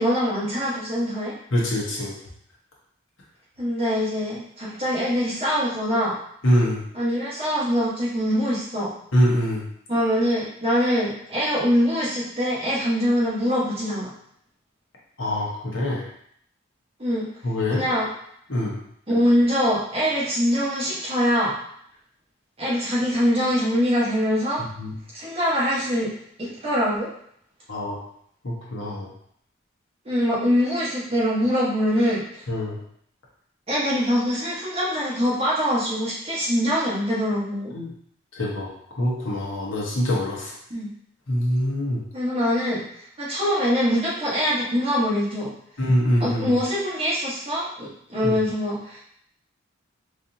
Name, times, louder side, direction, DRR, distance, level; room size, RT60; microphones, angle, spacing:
voice 1, 0.0-1.3 3.6-6.2 6.9-8.9 9.9-14.1 17.0-17.3 17.7-18.1 19.1-21.6 22.6-24.6 25.1-26.1 26.4-27.1 30.0-32.2 33.7-37.7 40.7-40.9 42.1-42.8 43.2-45.5 46.2-49.0, equal, 30° right, -7 dB, 1.3 m, -23 dB
voice 2, 1.5-2.1 6.4-6.8 9.1-9.6 15.2-16.1 17.4-17.8 18.5-18.8 24.8-24.9 27.7-28.0 28.4-29.1 32.5-32.8 37.7-37.9 38.3-38.7 39.0-40.5 41.3-42.0 45.8-46.6 48.2-48.4, equal, 80° left, -4 dB, 1.2 m, -24 dB
4.0 x 3.4 x 2.8 m, 0.69 s
head